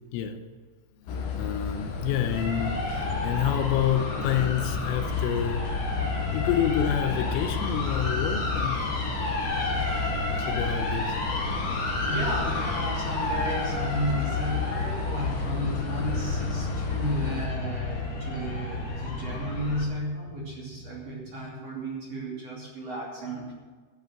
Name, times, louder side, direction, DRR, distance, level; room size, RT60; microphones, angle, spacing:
sound 1, 1.0-19.8, left 2 dB, 45° left, 4.7 m, -31 dB
sound 2, 1.1-17.5, left 5 dB, 65° left, 3.7 m, -34 dB
voice 1, 1.4-5.7 6.3-8.9 10.5-11.2, left 9 dB, 85° left, 8 dB, 3.4 m, -28 dB
voice 2, 11.9-23.5, equal, 40° right, -4 dB, 3.1 m, -33 dB
sound 3, 13.1-21.5, right 4 dB, 70° right, 3.2 m, -48 dB
14.5 x 8.3 x 7.3 m, 1.5 s
omnidirectional pair, 5.9 m